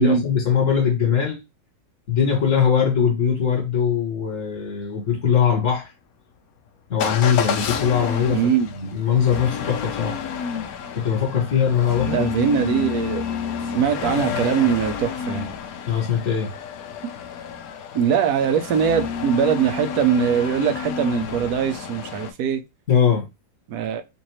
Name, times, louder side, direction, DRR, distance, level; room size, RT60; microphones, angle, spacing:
voice 1, 0.0-1.4 2.1-5.9 6.9-10.2 10.9-12.3 12.6-12.8 15.9-16.5 22.9-23.2, left 7 dB, 40° left, 1.7 m, -21 dB
Motor vehicle (road) / Engine starting / Accelerating revving vroom, 7.0-22.3, left 7 dB, 80° left, 0.8 m, -30 dB
voice 2, 8.3-8.7 12.1-13.2 13.7-15.5 17.9-22.6 23.7-24.0, right 7 dB, 70° right, 0.9 m, -21 dB
4.0 x 2.6 x 3.0 m
omnidirectional pair, 2.2 m